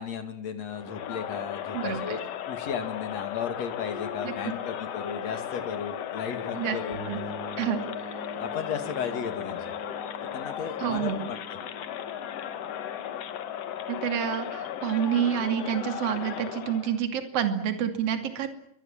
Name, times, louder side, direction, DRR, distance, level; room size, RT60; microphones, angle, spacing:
voice 1, 0.0-2.2 2.5-7.0 8.4-9.6 10.3-11.6, left 7 dB, 50° left, 8 dB, 3.3 m, -35 dB
Crowd, 0.7-17.0, left 10 dB, 65° left, 1.7 m, -36 dB
voice 2, 1.7-2.2 4.2-4.3 6.6-6.8 7.1-7.2 7.6-7.8 10.8-11.2 13.9-18.5, right 9 dB, 45° right, 7 dB, 3.3 m, -28 dB
sound 1, 6.9-16.5, right 4 dB, 25° right, 5.5 m, -47 dB
29.0 x 23.5 x 7.5 m, 0.75 s
omnidirectional pair, 4.3 m